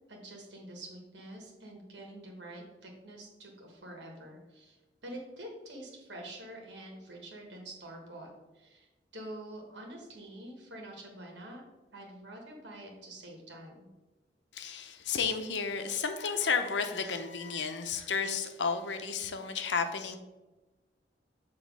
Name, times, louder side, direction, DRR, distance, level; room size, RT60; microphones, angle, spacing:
voice 1, 0.1-4.8 5.0-11.6 11.9-13.9, right 1 dB, 85° right, 0 dB, 1.5 m, -46 dB
voice 2, 14.5-20.2, left 5 dB, 85° left, 7 dB, 0.7 m, -32 dB
7.3 x 3.1 x 6.0 m, 1.1 s
head